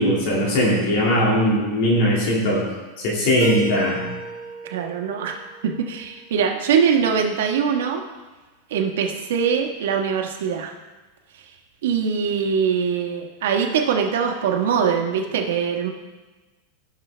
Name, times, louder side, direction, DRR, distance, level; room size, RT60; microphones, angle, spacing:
voice 1, 0.0-2.6 3.0-4.1, equal, 50° left, -3 dB, 2.2 m, -20 dB
Keyboard (musical), 3.4-6.3, right 5 dB, 55° right, 2.7 m, -33 dB
voice 2, 4.6-8.0 8.7-10.7 11.8-15.9, right 7 dB, 85° right, 3 dB, 1.3 m, -22 dB
16.0 x 6.3 x 3.3 m, 1.2 s
supercardioid pair, 170°, 0 cm